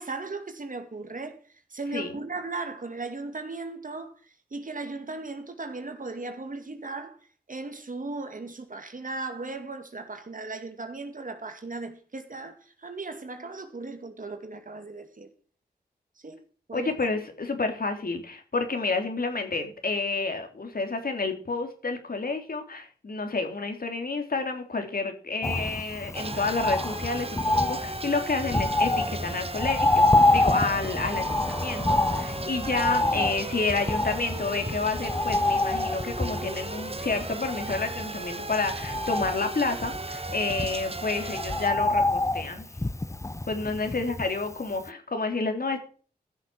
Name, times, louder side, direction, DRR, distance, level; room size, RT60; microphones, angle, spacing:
voice 1, 0.0-7.2 7.5-15.3 16.2-16.4 16.7-16.9 32.6-33.4, right 3 dB, 50° right, 2.4 m, -37 dB
voice 2, 16.7-42.7 43.5-45.8, left 3 dB, 60° left, 3.3 m, -30 dB
Bird, 25.4-44.5 44.9-45.0, left 2 dB, 15° left, 0.7 m, -27 dB
sound 1, 26.1-41.7, right 3 dB, 35° right, 1.2 m, -36 dB
14.5 x 6.7 x 6.4 m
cardioid pair, 45°, 17 cm